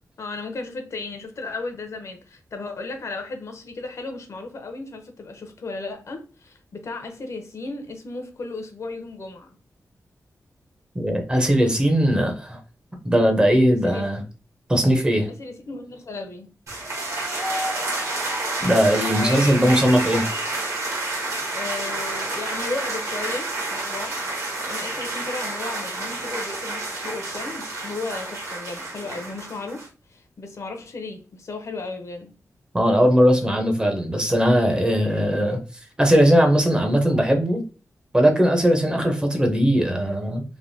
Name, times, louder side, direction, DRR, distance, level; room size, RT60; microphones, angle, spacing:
voice 1, 0.2-9.6 13.8-14.0 15.3-16.5 19.2-19.6 21.5-24.2 24.7-32.4, left 3 dB, 60° left, 0.6 m, -35 dB
voice 2, 10.9-12.6 13.0-14.2 14.7-15.3 18.6-20.2 32.7-35.6 36.0-37.6 38.1-40.4, equal, 15° right, 0.5 m, -19 dB
sound 1, 16.7-29.9, right 2 dB, 60° right, 1.0 m, -29 dB
3.2 x 2.1 x 2.5 m
wide cardioid pair, 140°, 6 cm